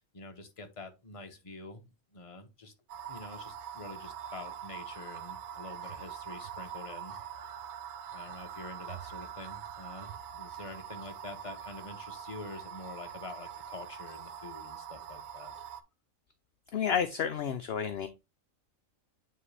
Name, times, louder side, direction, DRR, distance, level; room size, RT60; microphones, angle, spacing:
voice 1, 0.0-1.8 2.1-2.7 3.1-7.2 8.1-15.5, left 3 dB, 30° left, 0.9 m, -46 dB
sound 1, 2.9-15.8, right 8 dB, 75° right, 1.1 m, -44 dB
voice 2, 16.7-18.1, left 7 dB, 60° left, 0.7 m, -30 dB
9.5 x 3.2 x 3.2 m
omnidirectional pair, 1.4 m